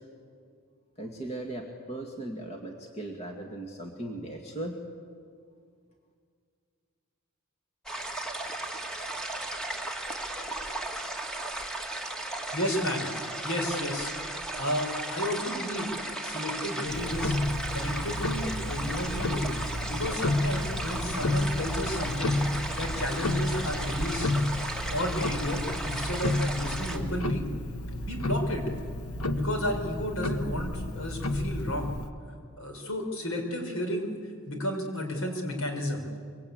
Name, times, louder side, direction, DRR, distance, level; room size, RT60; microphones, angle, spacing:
voice 1, 1.0-4.8, right 1 dB, 30° left, 1 dB, 2.1 m, -38 dB
sound 1, 7.9-27.0, right 2 dB, 5° left, 1.9 m, -35 dB
voice 2, 12.5-13.1 13.4-14.3 14.6-15.9 16.2-17.4 17.7-19.4 19.9-24.3 24.9-27.4 28.1-28.6 29.3-31.9 32.6-34.1 34.5-36.0, left 1 dB, 70° left, 3 dB, 4.9 m, -32 dB
Tick-tock, 16.9-32.1, left 1 dB, 90° left, 1.2 m, -31 dB
25.5 x 23.5 x 8.6 m, 2.1 s
head